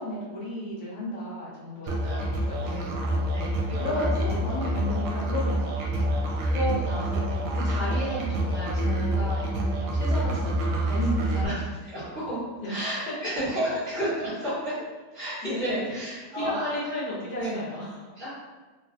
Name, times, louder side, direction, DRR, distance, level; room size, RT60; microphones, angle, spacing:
voice 1, 0.0-3.2 3.7-6.4 11.0-11.5 12.6-13.1 15.4-15.8 16.2-18.0, left 1 dB, 70° left, -6 dB, 1.2 m, -34 dB
voice 2, 1.8-2.3 2.6-2.9 3.3-4.3 4.6-4.7 6.4-11.0 11.3-12.4 12.7-14.8 15.1-17.0 17.3-17.6 18.1-18.3, right 1 dB, 50° right, -13 dB, 1.4 m, -33 dB
Musical instrument, 1.9-11.5, right 1 dB, 80° right, 1.1 m, -27 dB
3.2 x 2.4 x 2.5 m, 1.3 s
omnidirectional pair, 1.7 m